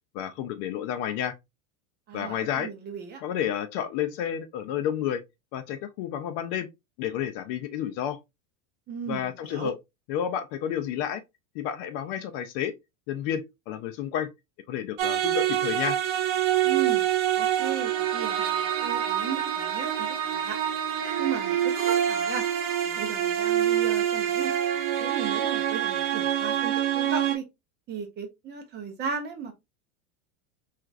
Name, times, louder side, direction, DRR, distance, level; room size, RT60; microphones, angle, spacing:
voice 1, 0.1-1.3 2.1-2.7 3.2-5.2 5.5-6.7 7.0-8.2 9.1-9.7 10.1-11.2 11.5-12.7 13.1-14.3 14.7-16.0, left 9 dB, 45° left, 0.4 m, -30 dB
voice 2, 2.1-3.2 8.9-9.7 16.6-17.0 17.3-20.6 21.2-22.4 22.8-24.5 25.0-27.4 27.9-29.5, right 6 dB, 25° right, 0.6 m, -36 dB
sound 1, 15.0-27.4, right 10 dB, 60° right, 0.9 m, -26 dB
4.3 x 2.5 x 2.4 m
supercardioid pair, 140°, 44 cm